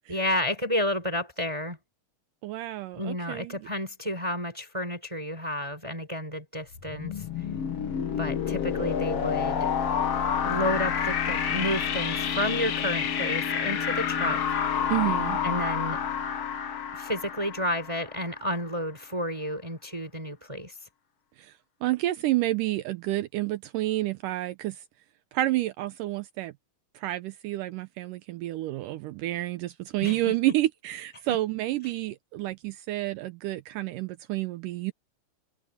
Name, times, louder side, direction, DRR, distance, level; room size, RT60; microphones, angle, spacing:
voice 1, 0.1-1.8 2.9-7.2 8.2-9.7 10.4-14.6 15.4-16.0 16.9-20.8 30.0-30.4 31.3-31.4, left 1 dB, 10° right, 4.3 m, -31 dB
voice 2, 2.4-3.6 14.9-15.4 21.4-21.5 21.8-24.8 25.3-26.5 27.0-34.9, right 16 dB, 80° right, 2.2 m, -29 dB
sound 1, 6.7-18.4, left 7 dB, 50° left, 2.3 m, -29 dB
omnidirectional pair, 4.0 m